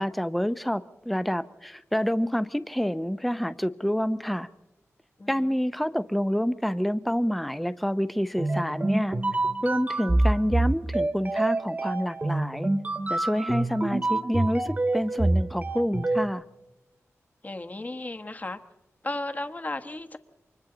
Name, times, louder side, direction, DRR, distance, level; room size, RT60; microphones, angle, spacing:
voice 1, 0.0-4.5 5.3-9.2 9.6-12.7 13.1-16.4, equal, ahead, 12 dB, 0.6 m, -27 dB
voice 2, 5.2-5.5 13.5-13.8 17.4-18.6 19.0-20.2, left 2 dB, 30° left, 8 dB, 1.3 m, -35 dB
sound 1, 8.4-16.3, right 2 dB, 30° right, 1.3 m, -26 dB
29.0 x 25.0 x 3.9 m, 0.99 s
wide cardioid pair, 110°, 5 cm